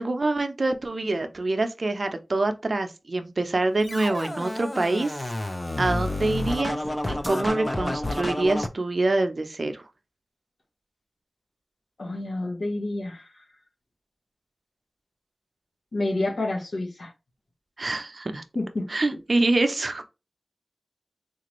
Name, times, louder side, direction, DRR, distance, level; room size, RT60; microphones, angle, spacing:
voice 1, 0.0-5.2 5.8-6.8 7.1-9.8 17.8-18.4 18.9-20.0, right 2 dB, 60° right, 0.5 m, -25 dB
Scratching (performance technique), 3.8-8.7, left 1 dB, 30° left, 0.5 m, -30 dB
voice 2, 12.0-13.2 15.9-17.1 18.5-18.9, left 2 dB, 80° left, 1.1 m, -28 dB
3.7 x 2.5 x 3.0 m
wide cardioid pair, 65°, 0 cm